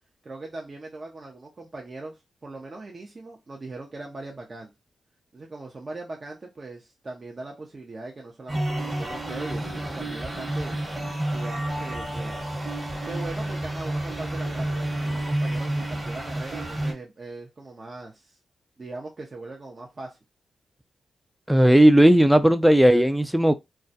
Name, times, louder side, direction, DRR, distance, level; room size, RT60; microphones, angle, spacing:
voice 1, 0.2-4.7 5.3-10.8 11.3-12.4 13.1-18.4 18.8-20.2, right 2 dB, 45° right, 0.6 m, -40 dB
sound 1, 8.5-16.9, right 1 dB, 30° right, 1.0 m, -30 dB
voice 2, 21.5-23.5, right 1 dB, 5° right, 0.3 m, -16 dB
2.2 x 2.1 x 2.7 m
supercardioid pair, 45°, 0 cm